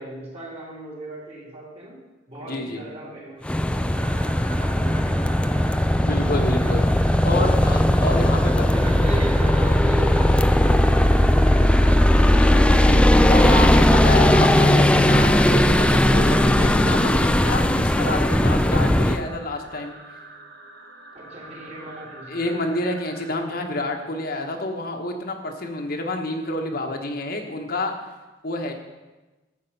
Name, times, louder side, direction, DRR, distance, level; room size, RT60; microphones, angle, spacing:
voice 1, 0.0-7.8 8.1-11.6 21.1-22.8, right 1 dB, 35° right, -4 dB, 3.0 m, -38 dB
voice 2, 2.5-2.8 6.0-6.9 7.2-8.7 12.8-13.0 13.3-20.0 22.3-27.9 28.4-28.7, left 2 dB, 55° left, 3 dB, 1.2 m, -28 dB
sound 1, 3.5-19.2, left 1 dB, 5° left, 0.4 m, -18 dB
sound 2, 3.9-23.3, right 3 dB, 70° right, 1.5 m, -41 dB
11.5 x 8.1 x 5.5 m, 1.1 s
head